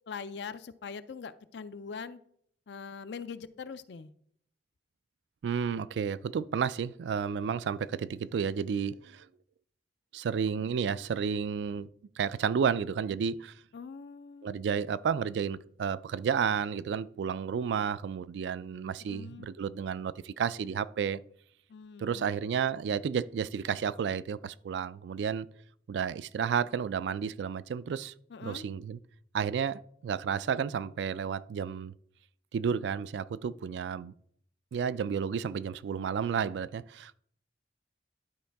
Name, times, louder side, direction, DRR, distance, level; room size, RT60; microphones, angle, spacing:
voice 1, 0.1-2.2 2.7-4.1 13.7-14.6 19.0-19.5 21.7-22.4 28.3-28.6, left 5 dB, 70° left, 0.4 m, -42 dB
voice 2, 5.4-9.3 10.1-11.9 12.2-13.5 14.4-21.2 22.0-25.5 25.9-28.1 28.4-29.0 29.3-31.9 32.5-34.1 34.7-37.2, right 7 dB, 80° right, 0.3 m, -31 dB
11.5 x 4.6 x 3.4 m
head